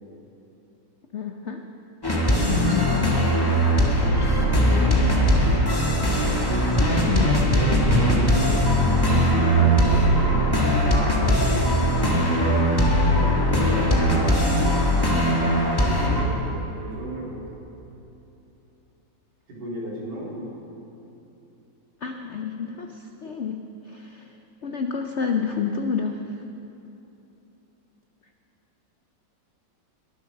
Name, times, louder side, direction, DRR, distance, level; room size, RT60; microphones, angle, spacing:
voice 1, 1.1-1.6 2.4-2.9 7.1-7.3 22.0-23.6 23.9-24.3 24.6-26.2, left 6 dB, 65° left, 4 dB, 0.7 m, -29 dB
sound 1, 2.0-16.2, equal, 15° left, 1.3 m, -20 dB
voice 2, 3.4-5.0 6.4-11.2 12.0-12.8 13.1-14.8 15.8-17.5 19.5-20.5, right 1 dB, 65° right, -6 dB, 3.9 m, -34 dB
21.5 x 8.0 x 6.5 m, 2.9 s
omnidirectional pair, 2.0 m